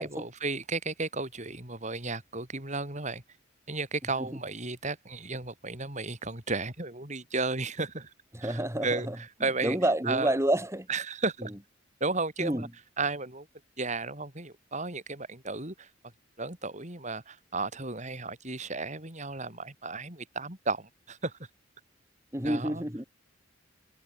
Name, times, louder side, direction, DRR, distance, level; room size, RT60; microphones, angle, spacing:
voice 1, 0.0-3.2 3.7-8.1 8.4-9.8 10.1-10.4 10.9-11.5 12.0-12.7 13.0-13.5 13.8-15.9 16.4-21.3 22.4-22.8, right 3 dB, 35° right, 6.1 m, -34 dB
voice 2, 8.3-9.2 9.6-10.9 12.4-12.6 22.3-23.0, right 1 dB, 15° right, 3.3 m, -28 dB
head